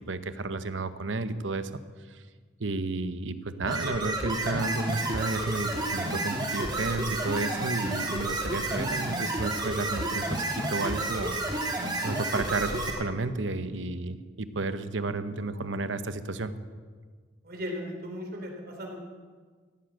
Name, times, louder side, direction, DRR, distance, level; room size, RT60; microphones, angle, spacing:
voice 1, 0.0-1.7 2.1-2.2 2.6-11.4 12.0-16.5, right 3 dB, 80° right, 12 dB, 0.9 m, -32 dB
sound 1, 3.6-12.9, right 2 dB, 20° right, 2.4 m, -30 dB
voice 2, 17.4-19.0, equal, 55° right, 2 dB, 3.2 m, -37 dB
16.0 x 10.0 x 7.6 m, 1.5 s
head